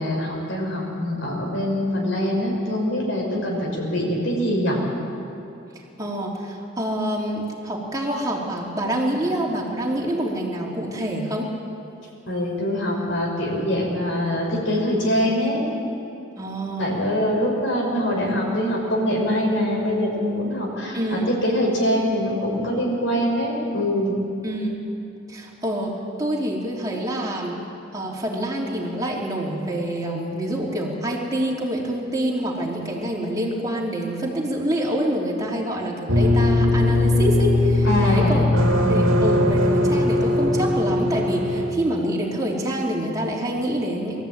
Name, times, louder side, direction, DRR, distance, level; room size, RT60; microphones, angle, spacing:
voice 1, 0.0-4.8 12.3-15.7 16.8-24.1 37.8-38.5 38.8-39.5, equal, 65° left, -2 dB, 5.5 m, -24 dB
voice 2, 6.0-11.5 16.4-17.0 20.9-21.4 24.4-24.8 25.3-27.6 27.9-38.5 38.9-44.2, right 1 dB, 15° right, -3 dB, 3.2 m, -26 dB
sound 1, 36.1-41.7, left 1 dB, 75° right, 2.1 m, -19 dB
22.5 x 14.0 x 8.9 m, 2.8 s
head